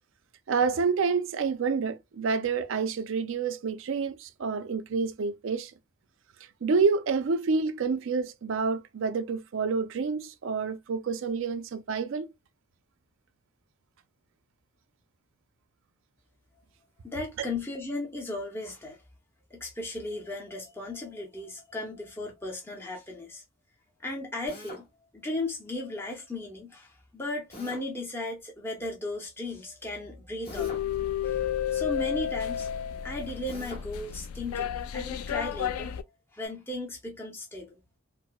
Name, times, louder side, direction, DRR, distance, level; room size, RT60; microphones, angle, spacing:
voice 1, 0.5-5.7 6.6-12.3, right 5 dB, 60° right, 0.4 m, -28 dB
voice 2, 17.0-19.0 19.5-23.4 24.0-24.8 25.2-30.8 31.2-31.4 31.7-32.7 33.0-36.0 36.3-37.8, left 2 dB, 10° left, 0.6 m, -36 dB
Drill, 24.5-24.9 27.5-27.9 30.4-30.9 33.5-33.9, left 1 dB, 45° left, 1.2 m, -43 dB
sound 1, 30.5-36.0, left 9 dB, 80° left, 0.3 m, -32 dB
4.5 x 2.0 x 2.2 m
head